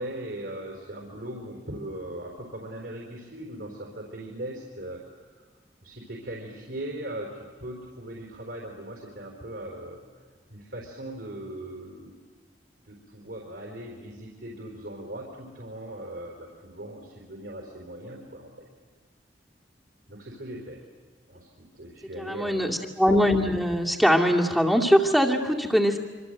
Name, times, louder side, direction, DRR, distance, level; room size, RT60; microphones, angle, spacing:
voice 1, 0.0-5.3 5.8-7.3 7.6-12.2 12.9-18.7 20.1-20.8 21.3-22.8, right 1 dB, 65° right, -1 dB, 4.2 m, -39 dB
voice 2, 22.2-26.0, equal, ahead, 0 dB, 2.2 m, -22 dB
26.0 x 25.5 x 7.9 m, 1.5 s
head